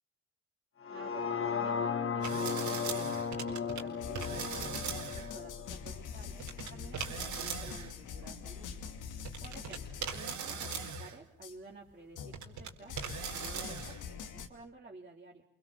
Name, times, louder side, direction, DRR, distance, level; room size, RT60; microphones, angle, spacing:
sound 1, 0.8-7.0 7.4-7.5, left 6 dB, 45° left, 1.8 m, -36 dB
voice 1, 0.9-6.4 6.7-8.7 9.4-9.8 10.1-15.4, right 3 dB, 25° right, -4 dB, 3.9 m, -52 dB
sound 2, 2.2-3.8 4.1-5.3 6.4-7.9 8.9-9.0 9.2-11.2 11.9-12.7 13.0-14.0, right 7 dB, 75° right, 4.2 m, -40 dB
sound 3, 4.0-11.1 11.4-11.5 12.1-14.5, left 6 dB, 80° left, 2.8 m, -44 dB
28.0 x 24.0 x 7.4 m, 0.68 s
cardioid pair, 90°, 30 cm